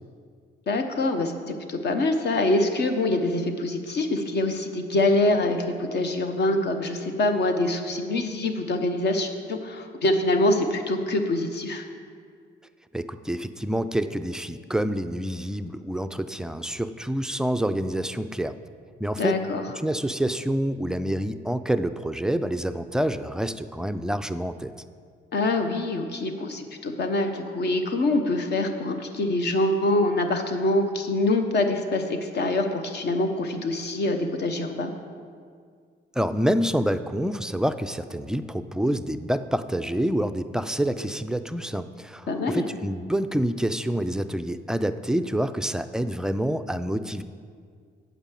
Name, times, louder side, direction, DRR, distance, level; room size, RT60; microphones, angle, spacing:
voice 1, 0.7-11.8 19.2-19.6 25.3-34.9 42.3-42.7, left 2 dB, 55° left, 6 dB, 1.0 m, -25 dB
voice 2, 12.9-18.5 19.0-19.4 19.8-24.7 36.2-47.2, equal, 5° right, 10 dB, 0.3 m, -27 dB
8.1 x 5.2 x 7.4 m, 2.1 s
cardioid pair, 90°, 20 cm